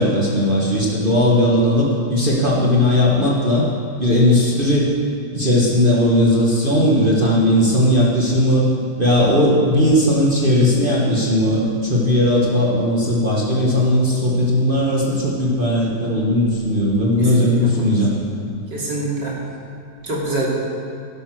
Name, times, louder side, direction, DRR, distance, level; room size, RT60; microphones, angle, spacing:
voice 1, 0.0-3.6 4.0-4.9 5.3-8.7 9.0-18.1, left 1 dB, 30° right, -4 dB, 1.7 m, -17 dB
voice 2, 17.2-18.1 18.7-19.4 20.0-20.5, right 2 dB, 70° right, -4 dB, 3.5 m, -26 dB
12.0 x 11.5 x 6.2 m, 2.5 s
omnidirectional pair, 2.0 m